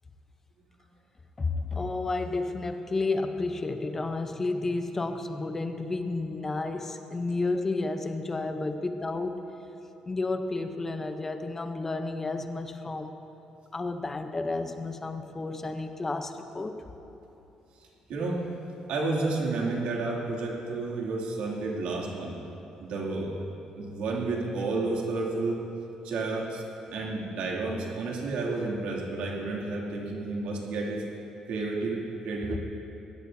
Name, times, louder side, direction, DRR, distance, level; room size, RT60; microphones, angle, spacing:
voice 1, 1.4-9.5 10.1-13.1 13.7-16.9 32.5-32.6, left 3 dB, 20° left, 7 dB, 0.8 m, -31 dB
voice 2, 18.1-18.5 18.9-22.4 22.8-23.3 23.7-25.6 26.0-26.6 26.9-31.0 31.5-32.6, right 3 dB, 85° right, -3 dB, 2.6 m, -31 dB
21.0 x 17.0 x 2.8 m, 3.0 s
cardioid pair, 160°, 2 cm